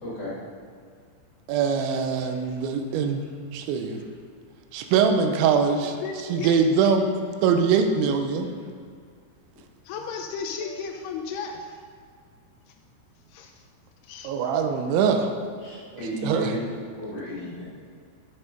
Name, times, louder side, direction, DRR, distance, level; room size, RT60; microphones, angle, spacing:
voice 1, 0.0-0.3 2.3-2.4 6.2-6.5 10.6-10.7 15.6-16.7 17.0-17.7, equal, 35° left, -8 dB, 1.8 m, -34 dB
voice 2, 1.5-3.3 3.5-4.0 4.7-6.0 6.3-7.1 7.4-8.5 14.2-15.3 15.9-16.6, right 6 dB, 90° right, 5 dB, 3.1 m, -23 dB
voice 3, 6.0-6.6 9.9-11.8 12.7-12.8 13.3-13.6 14.0-14.3, left 5 dB, 85° left, 3 dB, 2.4 m, -34 dB
9.6 x 5.6 x 5.3 m, 2.1 s
omnidirectional pair, 5.1 m